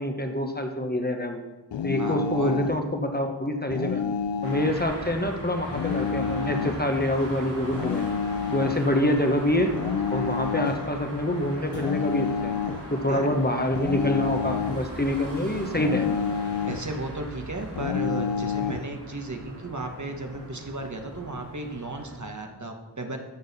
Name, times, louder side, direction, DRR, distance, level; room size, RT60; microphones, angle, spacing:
voice 1, 0.0-1.4 1.8-4.0 4.4-8.0 8.5-9.7 10.1-12.5 12.9-16.2, left 1 dB, 25° left, 4 dB, 1.1 m, -26 dB
sound 1, 1.7-2.8 3.7-4.8 5.7-6.8 7.7-8.8 9.7-10.9 11.7-12.9 13.7-14.9 15.7-16.9 17.8-18.9, left 6 dB, 85° left, 0.5 m, -29 dB
voice 2, 2.0-2.6 13.1-13.3 16.7-23.2, right 2 dB, 45° right, 3 dB, 1.3 m, -34 dB
morning street, 4.4-22.2, right 1 dB, 70° right, 3.6 m, -39 dB
13.0 x 6.4 x 4.2 m, 1.1 s
wide cardioid pair, 60°, 42 cm